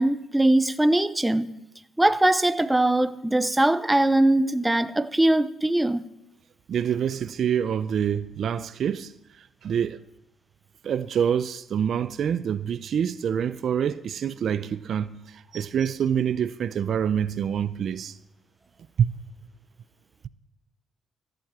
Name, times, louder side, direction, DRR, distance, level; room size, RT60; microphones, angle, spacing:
voice 1, 0.0-1.6 2.0-6.0, right 1 dB, 10° right, 0.7 m, -21 dB
voice 2, 6.7-9.1 9.6-10.0 10.8-18.1 19.0-19.1, right 8 dB, 60° right, 0.6 m, -26 dB
14.5 x 7.8 x 7.5 m
cardioid pair, 80°, 0 cm